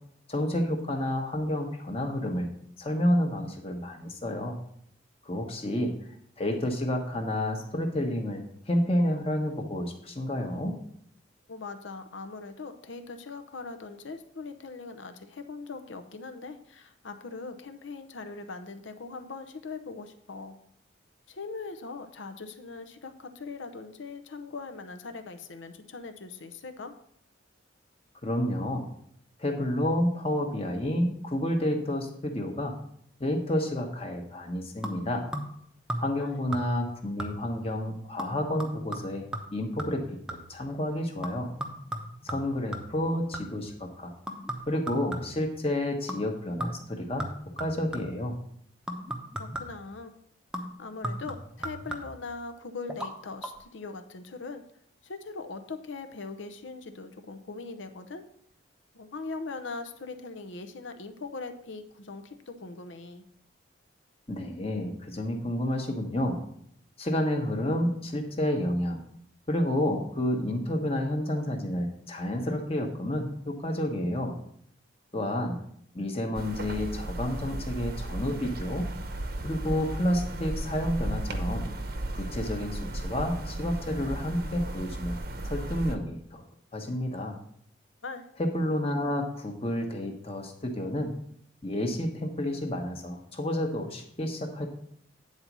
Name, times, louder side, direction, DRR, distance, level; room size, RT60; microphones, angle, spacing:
voice 1, 0.3-2.5 2.8-4.6 5.2-5.9 6.4-10.8 28.2-28.9 29.4-32.7 33.2-35.2 36.0-39.2 39.5-41.5 42.2-44.1 44.7-47.3 47.6-48.4 64.3-66.4 67.0-69.0 69.5-74.3 75.1-75.6 75.9-78.9 79.4-81.7 82.1-85.2 85.4-86.4 86.7-87.4 88.4-91.1 91.6-94.7, left 1 dB, 30° left, 3 dB, 1.1 m, -30 dB
voice 2, 11.5-20.6 21.3-27.0 36.2-36.4 49.4-50.2 50.8-54.6 55.0-58.3 58.9-63.2 88.0-88.3, left 3 dB, 80° left, 8 dB, 0.8 m, -41 dB
sound 1, 34.8-35.6 35.9-36.3 36.5-36.9 37.2-37.6 38.2-40.6 41.2-43.7 44.3-45.5 46.1-46.3 46.6-48.3 48.9-49.9 50.5-52.3 52.9-53.1 53.4-53.5, right 1 dB, 5° right, 0.7 m, -37 dB
sound 2, 76.3-86.0, right 1 dB, 50° right, 0.8 m, -35 dB
9.4 x 4.1 x 6.0 m, 0.68 s
head